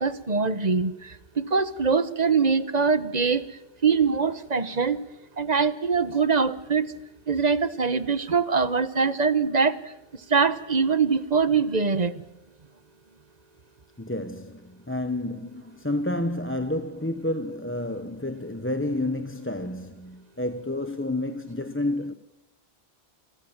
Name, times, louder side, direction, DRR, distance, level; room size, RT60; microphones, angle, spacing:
voice 1, 0.0-5.0 5.4-6.9 7.3-12.1, right 5 dB, 40° right, 1.2 m, -23 dB
voice 2, 14.0-22.1, left 1 dB, 10° left, 1.1 m, -30 dB
29.0 x 22.5 x 7.3 m
omnidirectional pair, 1.1 m